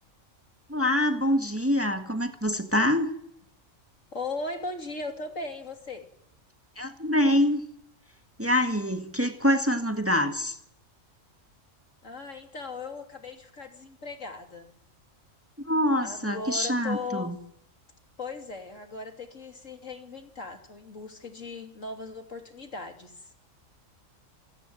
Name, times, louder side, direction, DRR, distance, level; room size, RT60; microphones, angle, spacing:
voice 1, 0.7-3.1 6.8-7.6 8.4-10.6 15.7-17.4, left 1 dB, 10° right, 7 dB, 1.8 m, -25 dB
voice 2, 4.1-6.1 12.0-14.7 16.0-17.3 18.2-23.3, left 3 dB, 70° left, 5 dB, 3.4 m, -38 dB
27.5 x 18.5 x 7.8 m, 0.74 s
omnidirectional pair, 1.4 m